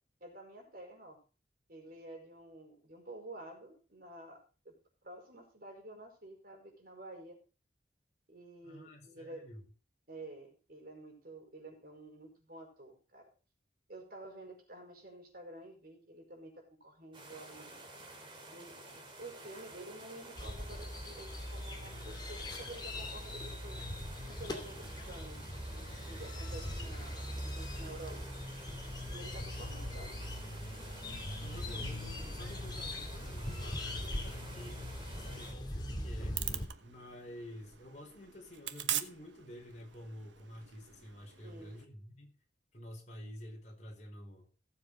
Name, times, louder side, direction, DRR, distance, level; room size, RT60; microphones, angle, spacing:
voice 1, 0.2-1.2 1.7-4.4 4.7-4.8 5.0-7.4 8.3-9.5 10.1-13.2 13.9-17.8 18.5-18.8 19.2-23.8 24.3-25.4 25.7-27.2 27.6-28.7 29.1-30.1 41.4-41.8, right 1 dB, 55° right, 5.2 m, -50 dB
voice 2, 8.6-9.6 26.5-26.9 31.3-34.8 35.1-36.4 36.8-42.3 42.7-44.5, left 1 dB, 40° left, 4.7 m, -50 dB
sound 1, 17.1-35.5, right 2 dB, 30° right, 3.1 m, -51 dB
sound 2, 20.4-36.7, left 1 dB, 25° left, 2.6 m, -41 dB
sound 3, 36.3-41.9, right 11 dB, 90° right, 1.1 m, -42 dB
16.5 x 7.6 x 4.8 m
head